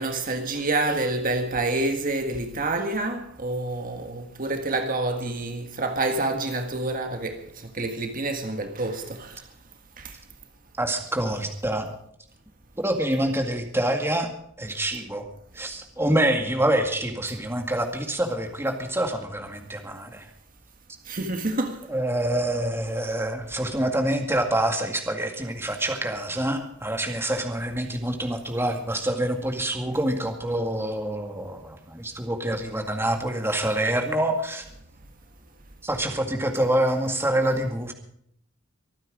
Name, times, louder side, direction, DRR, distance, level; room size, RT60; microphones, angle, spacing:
voice 1, 0.0-9.4 10.0-10.1 21.1-21.8, right 2 dB, 45° right, 1.7 m, -28 dB
voice 2, 10.8-11.9 12.8-14.3 14.6-15.3 15.5-20.3 21.9-34.6 35.8-37.9, right 1 dB, 10° right, 2.1 m, -26 dB
25.0 x 9.6 x 5.0 m
head